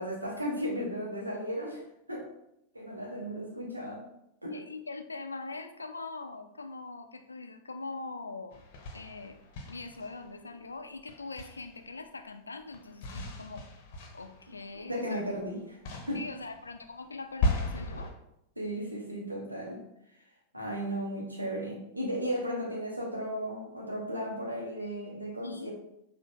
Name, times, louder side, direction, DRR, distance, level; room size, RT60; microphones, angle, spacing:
voice 1, 0.0-1.8 2.1-2.3 2.7-4.1 4.4-4.6 14.7-15.6 16.1-16.2 18.6-19.8 20.5-25.7, equal, 85° right, -2 dB, 0.9 m, -35 dB
voice 2, 4.5-8.6 8.9-13.7 14.1-15.2 16.1-18.1 25.4-25.7, left 3 dB, 80° left, 7 dB, 0.3 m, -42 dB
sound 1, 8.5-10.5 11.1-11.9 12.7-15.5 15.8-18.1, left 2 dB, 50° left, 0.7 m, -36 dB
6.3 x 2.5 x 2.2 m, 0.81 s
figure-of-eight pair, 90°, 0 cm